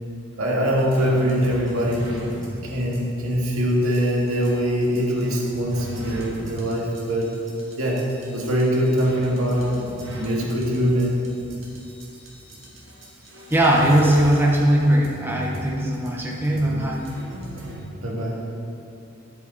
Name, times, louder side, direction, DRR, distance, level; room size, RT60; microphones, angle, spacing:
voice 1, 0.4-2.2 2.6-7.4 7.8-8.0 8.3-9.8 10.2-11.2 18.0-18.5, equal, 85° right, -3 dB, 2.0 m, -23 dB
sound 1, 0.7-17.8, equal, 60° right, 2.5 m, -38 dB
voice 2, 13.5-17.2, right 1 dB, 10° right, -2 dB, 0.9 m, -19 dB
12.0 x 8.3 x 4.0 m, 2.8 s
head